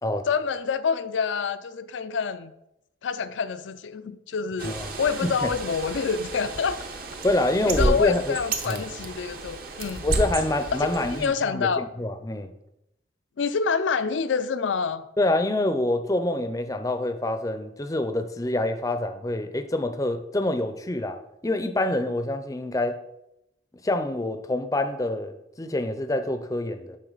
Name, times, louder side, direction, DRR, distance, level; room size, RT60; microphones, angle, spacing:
voice 1, 0.3-2.5 3.0-6.8 7.7-10.0 11.1-11.9 13.4-15.1, left 5 dB, 85° left, 12 dB, 0.4 m, -27 dB
Bird, 4.6-11.3, right 2 dB, 50° right, 0.9 m, -31 dB
voice 2, 7.2-8.4 8.7-8.8 10.0-12.5 15.2-23.0 23.8-27.0, left 1 dB, 20° left, 8 dB, 0.5 m, -26 dB
11.0 x 3.8 x 4.0 m, 0.86 s
head